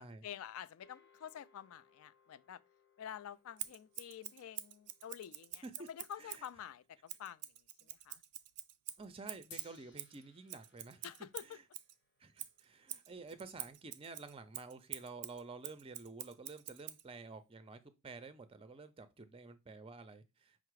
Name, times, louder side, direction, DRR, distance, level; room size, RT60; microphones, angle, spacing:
voice 1, 0.0-2.6 3.0-6.8 7.2-7.5 7.8-8.2 11.0-11.6, left 9 dB, 70° left, 0.3 m, -49 dB
sound 1, 0.8-7.3 9.5-13.9, left 6 dB, 50° left, 0.7 m, -66 dB
Scissors, 3.6-6.5 7.1-11.9 12.4-17.0, right 13 dB, 85° right, 0.4 m, -47 dB
voice 2, 9.0-11.1 11.4-11.6 12.2-20.7, right 3 dB, 25° right, 0.4 m, -51 dB
5.6 x 2.0 x 4.6 m
head